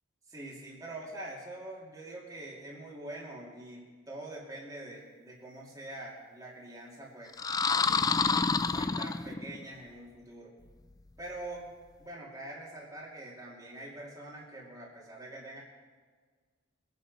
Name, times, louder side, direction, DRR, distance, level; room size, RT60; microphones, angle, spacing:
voice 1, 0.3-7.3 7.7-10.5 11.2-11.7 12.0-15.6, right 1 dB, 15° right, -5 dB, 2.4 m, -45 dB
sound 1, 7.3-9.6, left 4 dB, 20° left, 0.3 m, -28 dB
22.0 x 8.0 x 5.2 m, 1.5 s
head